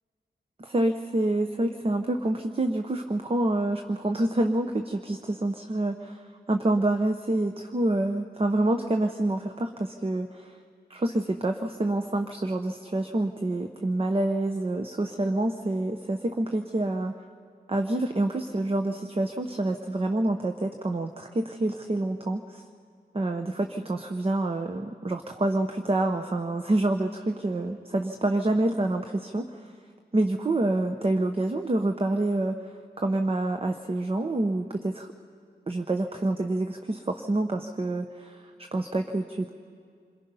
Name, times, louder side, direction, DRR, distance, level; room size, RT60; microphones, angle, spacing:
voice 1, 0.6-10.6 10.9-17.1 17.7-22.6 23.1-29.7 30.1-35.1 35.7-39.5, right 2 dB, 35° right, 5 dB, 0.9 m, -27 dB
28.0 x 22.0 x 5.5 m, 2.2 s
wide cardioid pair, 95°, 17 cm